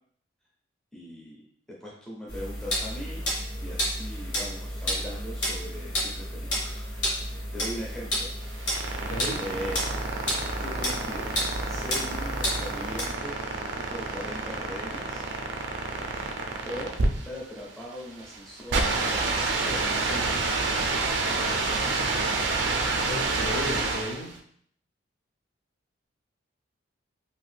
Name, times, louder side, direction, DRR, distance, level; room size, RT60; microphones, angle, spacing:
voice 1, 0.9-1.4 1.8-3.2 3.6-6.9 7.3-8.3 9.4-9.8 10.6-15.3 16.6-20.8, equal, 5° left, -4 dB, 0.5 m, -40 dB
sound 1, 2.3-13.1, equal, 70° left, 1.2 m, -31 dB
sound 2, 8.4-24.3, right 3 dB, 65° right, 0.4 m, -28 dB
voice 2, 9.0-9.4 23.1-24.3, left 1 dB, 45° left, 0 dB, 0.6 m, -34 dB
2.7 x 2.4 x 3.3 m, 0.62 s
head